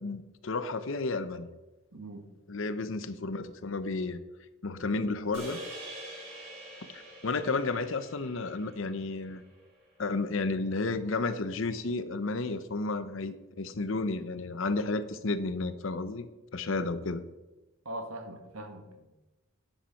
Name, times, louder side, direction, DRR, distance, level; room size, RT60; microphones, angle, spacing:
voice 1, 0.0-1.5 2.5-4.2 4.6-5.6 6.9-9.4 10.0-16.3 16.5-17.2, left 3 dB, 60° left, 12 dB, 0.7 m, -32 dB
voice 2, 1.9-2.2 17.8-19.2, right 1 dB, 75° right, 5 dB, 1.5 m, -41 dB
sound 1, 5.3-9.7, right 1 dB, 60° right, 3.7 m, -45 dB
10.0 x 8.2 x 5.7 m, 1.1 s
head